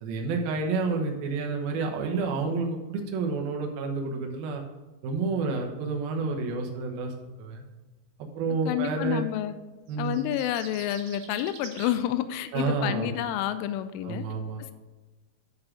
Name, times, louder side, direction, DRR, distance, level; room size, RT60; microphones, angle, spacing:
voice 1, 0.0-4.6 5.0-7.6 8.2-9.2 9.9-10.2 12.5-13.1 14.0-14.6, right 4 dB, 90° right, 2 dB, 2.1 m, -29 dB
voice 2, 8.7-9.5 10.0-14.2, left 11 dB, 85° left, 11 dB, 2.9 m, -29 dB
sound 1, 9.9-12.0, right 6 dB, 70° right, 2.9 m, -45 dB
10.0 x 5.0 x 4.9 m, 1.2 s
omnidirectional pair, 6.0 m